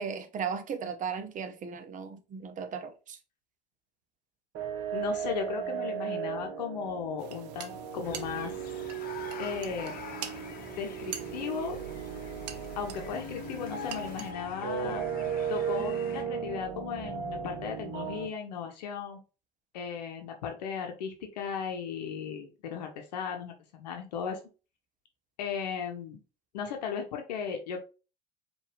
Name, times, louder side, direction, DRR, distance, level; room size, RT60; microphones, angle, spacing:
voice 1, 0.0-3.2, right 6 dB, 40° right, 0.8 m, -36 dB
sound 1, 4.5-18.3, right 7 dB, 55° right, 1.1 m, -36 dB
voice 2, 4.9-8.5 9.4-9.9 10.7-11.8 12.8-15.0 15.5-19.2 19.7-24.4 25.4-26.2 26.5-27.8, left 7 dB, 80° left, 0.8 m, -36 dB
sound 2, 7.2-14.3, right 9 dB, 75° right, 0.6 m, -45 dB
sound 3, 8.0-16.2, left 6 dB, 45° left, 0.8 m, -46 dB
4.6 x 2.6 x 3.1 m
hypercardioid pair, 70°, 21 cm